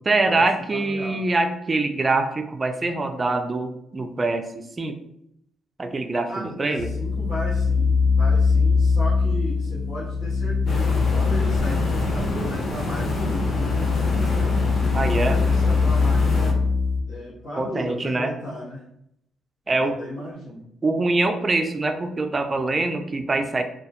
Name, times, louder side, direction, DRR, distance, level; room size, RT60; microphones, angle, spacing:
voice 1, 0.1-5.0 5.8-6.9 14.9-15.4 17.6-18.3 19.7-20.0 20.8-23.6, right 2 dB, 30° right, 7 dB, 0.3 m, -24 dB
voice 2, 0.7-1.2 6.3-14.5 15.2-16.5 17.1-18.8 19.8-20.7, equal, 65° left, -10 dB, 0.9 m, -35 dB
sound 1, 6.8-17.0, left 4 dB, 5° right, 0.9 m, -22 dB
sound 2, 10.7-16.5, left 2 dB, 45° left, 0.5 m, -28 dB
2.2 x 2.0 x 2.7 m, 0.76 s
cardioid pair, 90°, 0 cm